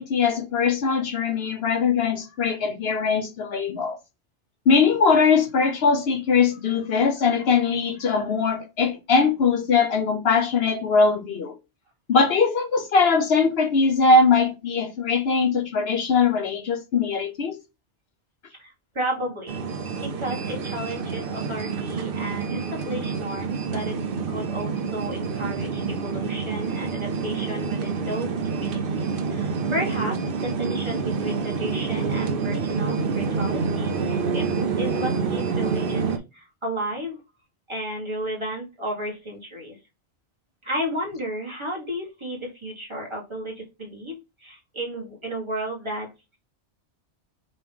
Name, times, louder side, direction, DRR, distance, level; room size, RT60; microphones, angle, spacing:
voice 1, 0.0-4.0 4.7-11.5 12.1-17.6, left 4 dB, 65° left, 0.9 m, -21 dB
voice 2, 18.6-19.6 20.0-24.0 24.3-34.5 34.8-37.2 37.7-39.8 40.6-46.4, right 1 dB, 25° right, 1.6 m, -33 dB
sound 1, 19.5-36.2, right 5 dB, 55° right, 0.8 m, -27 dB
5.3 x 3.0 x 3.4 m
omnidirectional pair, 1.2 m